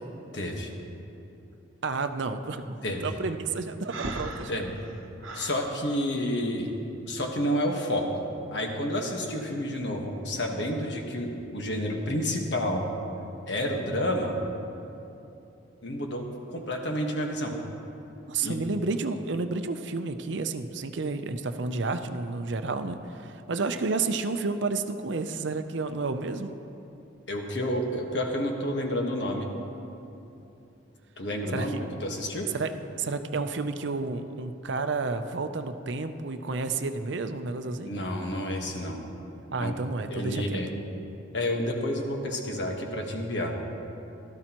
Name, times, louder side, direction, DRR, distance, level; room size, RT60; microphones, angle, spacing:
voice 1, 0.3-0.7 2.8-3.1 4.5-4.7 5.3-6.7 7.1-8.3 8.5-12.8 13.5-14.4 15.8-16.3 16.5-17.6 18.4-18.6 27.3-29.5 31.2-32.5 37.9-39.0 39.6-39.7 40.1-40.7 41.3-43.5, equal, 60° left, 1 dB, 1.4 m, -30 dB
voice 2, 1.8-4.6 18.3-26.5 31.5-31.7 32.5-32.7 33.0-38.0 39.5-40.6, right 3 dB, 65° right, 8 dB, 0.6 m, -31 dB
Breathing, 3.9-5.6, right 2 dB, 85° right, 0.9 m, -36 dB
16.5 x 13.0 x 3.0 m, 2.8 s
head